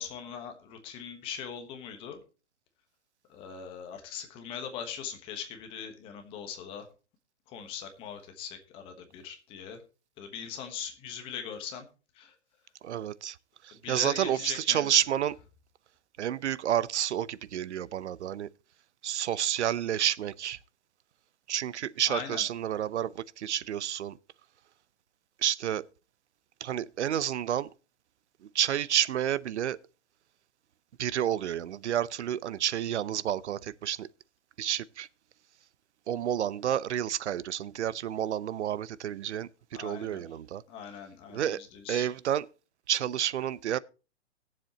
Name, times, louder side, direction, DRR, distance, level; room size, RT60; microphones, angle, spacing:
voice 1, 0.0-2.2 3.3-6.9 7.5-9.8 10.2-11.8 12.1-12.4 13.7-14.9 22.0-22.4 39.7-40.2 40.7-42.1, left 8 dB, 15° left, 1.2 m, -41 dB
voice 2, 12.8-13.4 13.6-15.4 16.2-18.5 19.0-20.6 21.5-24.2 25.4-25.8 26.6-27.7 28.4-29.8 31.0-34.1 34.6-35.1 36.1-40.6 41.3-41.6 41.9-42.4 42.9-43.8, right 10 dB, 75° right, 0.7 m, -30 dB
20.0 x 7.4 x 2.9 m
hypercardioid pair, 165°, 35 cm